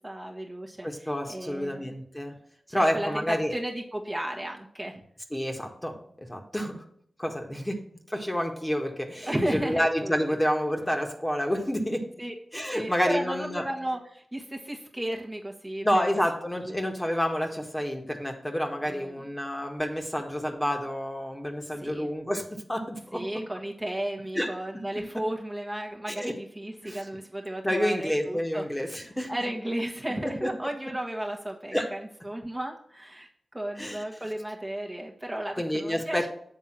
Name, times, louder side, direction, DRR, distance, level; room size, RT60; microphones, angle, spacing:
voice 1, 0.0-1.9 2.7-5.0 9.2-10.1 12.2-12.3 12.7-16.0 16.6-16.7 18.8-19.2 21.8-22.1 23.1-28.6 29.3-33.3 33.5-36.3, right 1 dB, 15° right, 0 dB, 1.3 m, -34 dB
voice 2, 0.8-2.4 2.7-3.5 5.3-6.8 7.2-7.8 8.1-12.1 12.5-13.6 15.8-23.2 24.3-24.5 26.1-26.3 26.8-27.0 27.6-29.3 31.7-31.9 33.8-34.0 35.6-36.3, equal, 15° left, 3 dB, 1.5 m, -29 dB
7.9 x 3.6 x 5.9 m, 0.65 s
cardioid pair, 45°, 0 cm